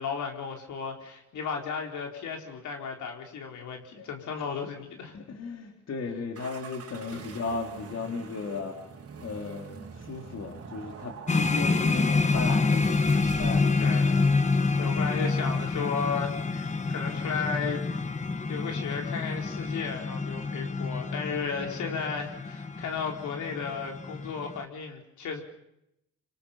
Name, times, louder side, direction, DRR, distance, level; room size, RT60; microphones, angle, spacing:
voice 1, 0.0-5.1 7.1-7.2 13.8-14.2 14.8-17.8 18.5-25.4, left 5 dB, 75° left, 2 dB, 4.4 m, -34 dB
voice 2, 5.1-8.8 9.2-13.1 13.4-13.9, left 4 dB, 55° left, 3 dB, 3.8 m, -36 dB
sound 1, 6.3-13.9, right 6 dB, 50° right, 3.7 m, -44 dB
sound 2, 11.3-24.6, left 3 dB, 25° left, 1.4 m, -27 dB
25.5 x 25.0 x 5.8 m, 0.82 s
cardioid pair, 90°, 30 cm